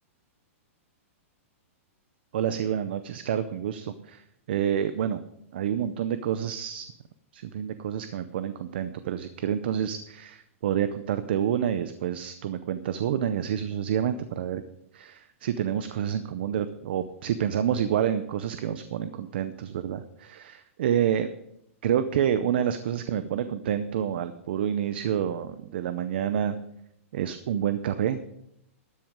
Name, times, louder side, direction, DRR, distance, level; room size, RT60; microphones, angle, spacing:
voice 1, 2.3-4.2 4.5-5.2 5.5-6.9 7.3-14.6 14.9-21.3 21.8-26.6 27.1-28.2, right 9 dB, 45° right, 12 dB, 0.6 m, -28 dB
13.0 x 7.7 x 5.1 m, 0.78 s
supercardioid pair, 180°, 8 cm